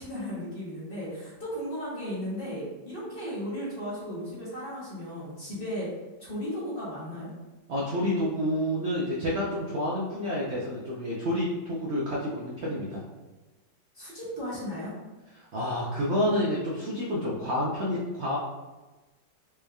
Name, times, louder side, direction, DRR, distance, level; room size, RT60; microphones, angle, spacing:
voice 1, 0.0-5.9 6.2-7.3 13.9-15.0, equal, 35° left, -7 dB, 1.1 m, -35 dB
voice 2, 7.7-13.0 15.4-18.4, left 1 dB, 80° right, -5 dB, 0.6 m, -29 dB
4.6 x 3.2 x 2.3 m, 1.2 s
omnidirectional pair, 2.0 m